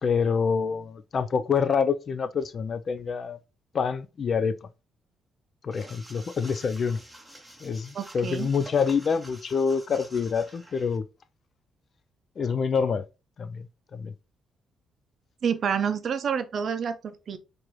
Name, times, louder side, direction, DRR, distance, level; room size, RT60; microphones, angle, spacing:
voice 1, 0.0-3.4 3.7-4.7 5.6-7.0 7.6-11.1 12.4-13.0 13.4-13.7 13.9-14.1, left 6 dB, 50° left, 0.3 m, -26 dB
sound 1, 5.7-11.0, right 1 dB, 5° right, 0.8 m, -48 dB
voice 2, 7.9-8.5 15.4-17.4, right 7 dB, 55° right, 0.5 m, -28 dB
4.6 x 2.6 x 2.9 m
cardioid pair, 90°, 0 cm